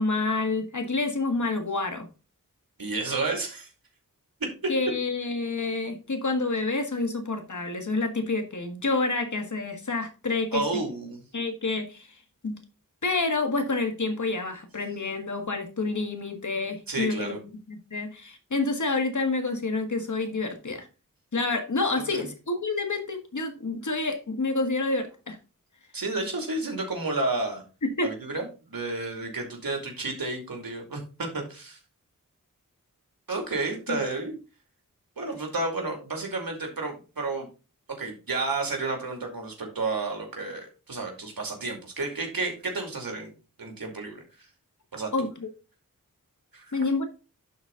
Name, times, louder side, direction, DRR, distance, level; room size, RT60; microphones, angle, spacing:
voice 1, 0.0-2.1 4.7-10.6 11.3-12.1 12.4-12.6 13.0-17.4 17.7-20.9 21.3-25.4 27.8-28.1 33.9-34.0 45.1-45.5 46.7-47.0, left 3 dB, 60° left, 6 dB, 1.6 m, -28 dB
voice 2, 2.8-3.7 4.6-4.7 10.5-11.2 16.9-17.4 22.1-22.3 25.9-27.6 28.0-31.8 33.3-34.4 35.2-37.5 38.0-43.3 43.6-44.2 44.9-45.1 46.5-46.6, right 3 dB, 80° right, 2 dB, 2.4 m, -31 dB
11.0 x 4.1 x 3.7 m, 0.33 s
wide cardioid pair, 55°, 34 cm